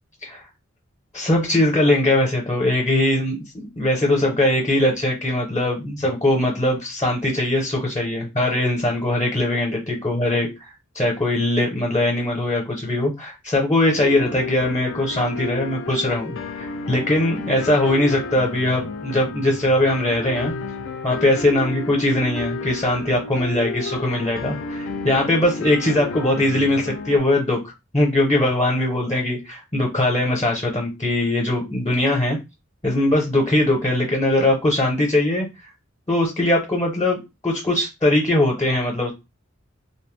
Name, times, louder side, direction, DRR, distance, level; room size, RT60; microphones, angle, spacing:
voice 1, 1.1-20.5 21.0-32.4 32.8-35.5 36.1-37.2 37.4-39.1, left 1 dB, 20° left, -1 dB, 0.6 m, -21 dB
sound 1, 14.0-27.2, left 3 dB, 70° left, 0.4 m, -32 dB
2.6 x 2.0 x 3.1 m, 0.24 s
head